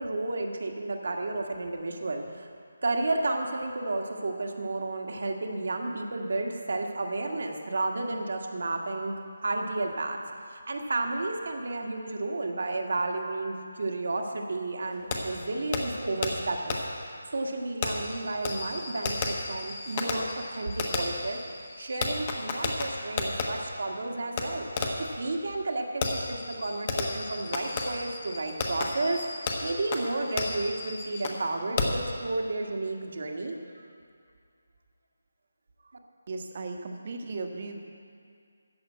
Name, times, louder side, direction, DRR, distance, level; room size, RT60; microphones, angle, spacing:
voice 1, 0.0-2.5 2.8-10.2 10.5-16.8 17.3-21.4 21.8-24.7 25.0-29.2 29.6-33.8, right 2 dB, 65° right, 2 dB, 1.5 m, -32 dB
Fireworks, 15.1-15.2 15.7-15.8 16.2-16.3 16.7-16.8 17.8-23.5 24.4-24.5 24.8-25.1 26.0-31.4 31.8-32.1, left 3 dB, 30° left, 1.2 m, -32 dB
voice 2, 36.3-37.8, right 3 dB, 40° right, 4 dB, 1.1 m, -36 dB
13.5 x 5.0 x 8.4 m, 2.3 s
figure-of-eight pair, 165°, 0 cm